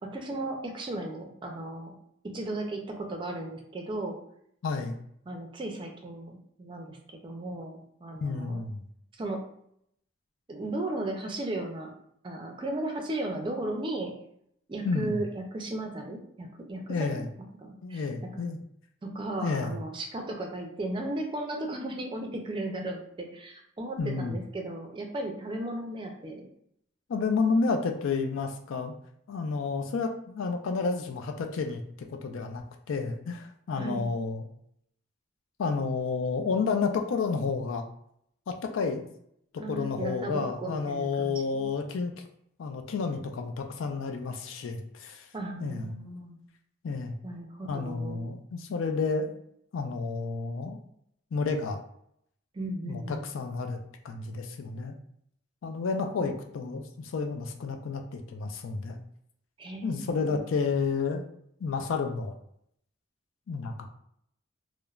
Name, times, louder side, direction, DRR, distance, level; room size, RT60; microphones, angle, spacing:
voice 1, 0.0-1.9 2.2-4.2 5.3-8.6 9.2-9.4 10.5-11.9 12.2-14.1 14.7-17.1 17.6-18.0 18.3-18.4 19.0-26.5 33.8-34.1 39.6-41.7 45.3-46.4 47.2-48.3 52.5-53.3 56.1-56.3 59.6-60.4, right 2 dB, 25° right, 2 dB, 0.4 m, -35 dB
voice 2, 4.6-5.0 8.2-8.9 14.8-15.2 16.9-17.3 17.8-18.6 19.4-19.7 24.0-24.4 27.1-28.9 29.3-31.8 32.1-34.4 35.6-37.9 38.5-39.1 39.7-42.1 42.6-45.3 45.6-45.9 46.8-47.2 47.6-49.3 49.7-50.8 51.3-51.8 52.8-53.8 54.0-54.9 55.6-59.0 59.8-61.2 61.6-62.3 63.5-63.9, left 4 dB, 80° left, 4 dB, 0.4 m, -30 dB
3.1 x 2.0 x 2.3 m, 0.71 s
head